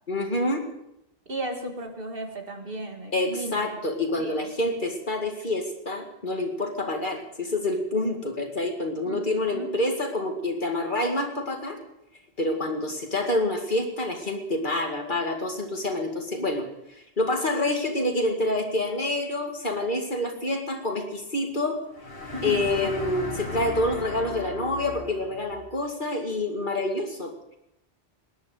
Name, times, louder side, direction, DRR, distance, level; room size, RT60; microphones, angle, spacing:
voice 1, 0.1-0.7 3.1-11.8 12.4-16.7 17.0-21.8 22.4-27.6, left 1 dB, 50° left, 3 dB, 2.4 m, -27 dB
voice 2, 1.3-3.6 4.2-4.5 9.0-9.7 22.3-22.6, right 1 dB, 60° right, 4 dB, 2.1 m, -34 dB
sound 1, 21.9-25.7, left 2 dB, 65° left, 2.9 m, -36 dB
19.5 x 10.5 x 6.5 m, 0.81 s
omnidirectional pair, 1.1 m